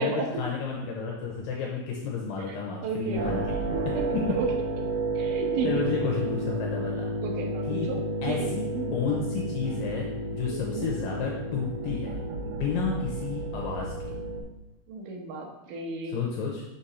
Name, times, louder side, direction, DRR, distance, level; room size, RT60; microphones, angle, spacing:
voice 1, 0.0-3.7 4.1-4.4 5.6-7.1 7.7-7.9 8.2-14.2 16.1-16.6, left 5 dB, 75° left, -1 dB, 2.5 m, -31 dB
voice 2, 2.8-3.4 3.7-3.9 4.3-4.5 5.2-5.7 7.2-8.0 8.3-8.5 8.8-8.9 10.5-10.9 14.9-16.1, right 4 dB, 70° right, 1 dB, 2.6 m, -33 dB
sound 1, 3.2-14.4, right 2 dB, 85° right, 1.4 m, -31 dB
6.3 x 6.0 x 4.2 m, 0.91 s
omnidirectional pair, 4.2 m